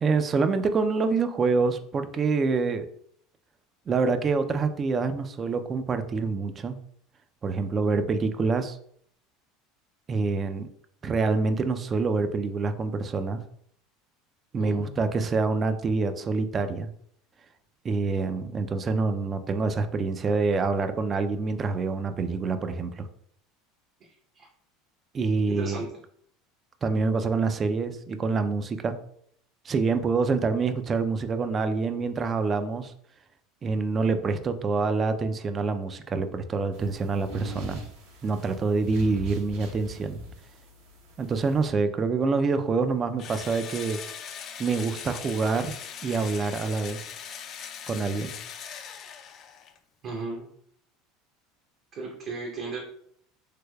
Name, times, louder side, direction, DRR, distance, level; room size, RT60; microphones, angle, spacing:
voice 1, 0.0-2.9 3.9-6.8 7.4-8.8 10.1-10.7 11.0-13.4 14.5-16.9 17.8-23.1 25.1-25.8 26.8-29.0 29.7-32.9 33.6-37.8 38.2-40.2 41.2-44.0 44.6-45.7 46.0-47.0 47.9-48.3, right 4 dB, 30° right, 9 dB, 0.3 m, -26 dB
voice 2, 14.6-15.0 24.3-24.5 25.5-25.9 50.0-50.5 52.0-52.8, right 3 dB, 50° right, -1 dB, 0.7 m, -35 dB
sound 1, 36.7-41.7, right 1 dB, 80° right, 0.9 m, -42 dB
Engine / Drill, 43.2-49.8, left 7 dB, 45° left, 0.4 m, -40 dB
3.2 x 3.1 x 2.2 m, 0.66 s
supercardioid pair, 105°, 0 cm